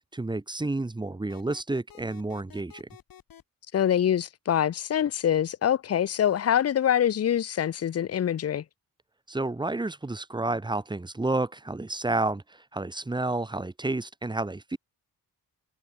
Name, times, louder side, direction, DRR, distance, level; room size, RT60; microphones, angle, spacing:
voice 1, 0.1-2.9 9.3-14.8, right 2 dB, 15° right, 1.3 m, -30 dB
sound 1, 1.3-3.4, left 10 dB, 75° left, 6.4 m, -51 dB
voice 2, 3.7-8.6, left 10 dB, 45° left, 0.8 m, -25 dB
cardioid pair, 120°, 35 cm